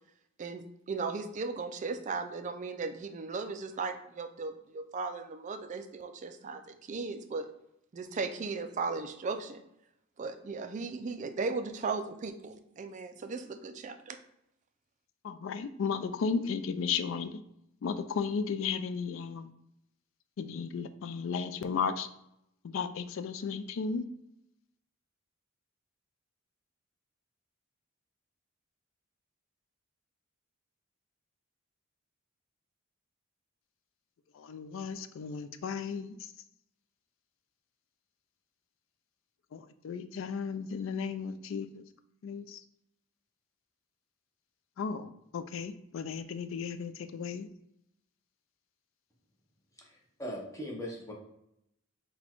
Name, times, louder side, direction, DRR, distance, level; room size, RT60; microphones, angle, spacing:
voice 1, 0.4-7.5 7.9-9.6 10.2-14.2, right 4 dB, 35° right, 8 dB, 0.3 m, -37 dB
voice 2, 15.2-17.4 17.8-19.5 20.4-22.1 22.7-24.0 34.3-36.3 39.5-41.8 42.2-42.6 44.8-47.5, left 5 dB, 65° left, 11 dB, 0.3 m, -34 dB
voice 3, 49.8-51.1, equal, 15° left, -1 dB, 0.7 m, -40 dB
4.1 x 2.2 x 4.4 m, 0.79 s
head